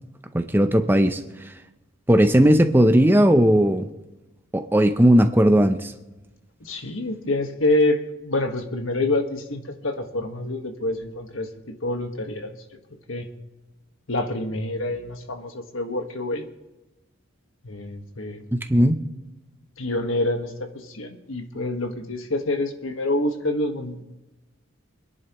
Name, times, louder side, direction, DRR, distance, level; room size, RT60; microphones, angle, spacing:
voice 1, 0.3-1.5 2.1-3.9 4.5-5.9 18.7-19.0, equal, 10° right, 8 dB, 0.6 m, -17 dB
voice 2, 6.6-12.6 13.1-13.3 14.1-16.4 17.6-18.5 19.8-24.0, left 2 dB, 75° left, 5 dB, 1.6 m, -27 dB
25.0 x 11.0 x 3.1 m, 1.0 s
head